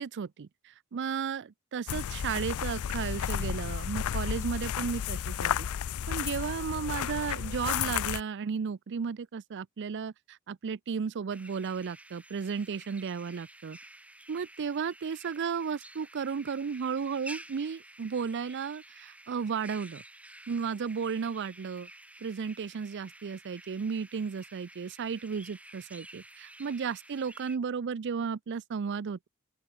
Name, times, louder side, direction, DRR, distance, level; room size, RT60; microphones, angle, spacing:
voice 1, 0.0-5.7 6.1-13.8 14.3-20.0 20.5-21.9 22.2-29.3, right 6 dB, 55° right, 0.4 m, -34 dB
sound 1, 1.9-8.2, left 9 dB, 85° left, 0.4 m, -32 dB
sound 2, 11.3-27.6, right 1 dB, 5° right, 5.6 m, -51 dB
open air
head